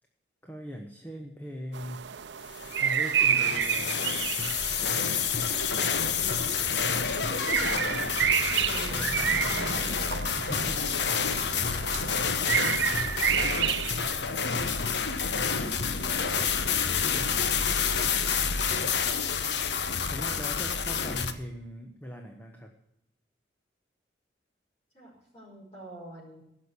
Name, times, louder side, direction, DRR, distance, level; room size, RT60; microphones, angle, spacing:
voice 1, 0.4-2.1 2.7-4.3 7.8-8.2 8.9-12.4 17.2-17.8 20.1-22.7, equal, 10° left, 2 dB, 1.2 m, -41 dB
sound 1, 1.7-14.1, right 8 dB, 85° right, 0.7 m, -30 dB
sound 2, 2.6-21.3, left 6 dB, 75° left, 1.0 m, -29 dB
voice 2, 6.1-6.5 8.7-10.2 24.9-26.4, right 1 dB, 25° left, -9 dB, 5.8 m, -46 dB
16.0 x 6.5 x 8.2 m, 0.78 s
head